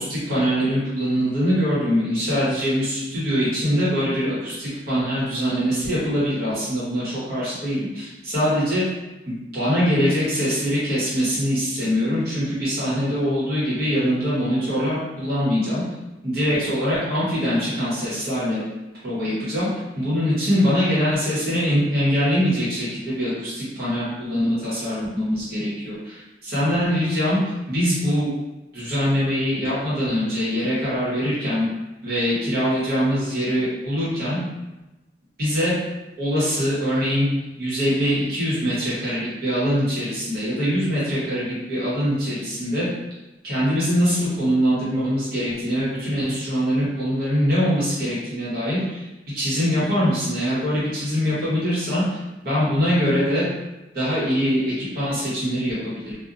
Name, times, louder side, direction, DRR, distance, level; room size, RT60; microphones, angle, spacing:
voice 1, 0.0-8.8 9.3-15.8 16.2-18.6 19.0-19.7 19.9-28.3 28.7-31.7 32.0-34.4 35.4-35.7 36.2-37.3 37.6-42.9 43.4-49.1 49.3-52.0 52.4-53.4 53.9-56.2, equal, 55° right, -10 dB, 1.2 m, -23 dB
2.6 x 2.2 x 2.5 m, 1.0 s
head